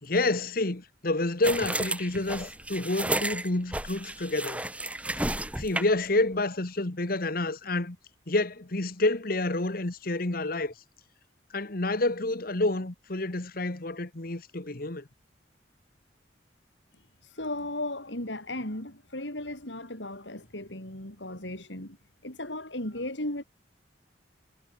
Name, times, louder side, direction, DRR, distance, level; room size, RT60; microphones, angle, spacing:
voice 1, 0.0-4.6 5.6-8.0 8.3-10.7 11.5-15.1, left 2 dB, 50° left, 1.5 m, -29 dB
sound 1, 1.4-6.1, right 1 dB, 5° right, 6.8 m, -32 dB
voice 2, 17.3-22.0 22.2-23.4, left 1 dB, 75° left, 7.8 m, -36 dB
head